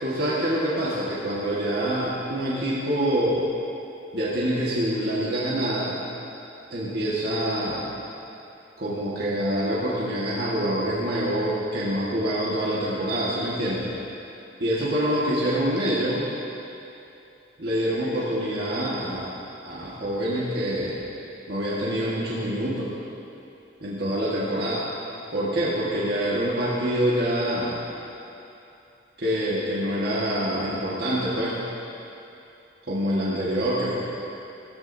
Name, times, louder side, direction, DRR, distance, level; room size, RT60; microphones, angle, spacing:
voice 1, 0.0-3.4 4.1-6.0 6.7-7.9 8.8-13.9 14.6-16.3 17.6-19.3 19.6-21.0 21.5-22.9 23.8-24.9 25.3-27.8 29.2-31.6 32.9-34.0, equal, 55° right, -7 dB, 1.7 m, -26 dB
15.5 x 13.0 x 2.8 m, 2.7 s
head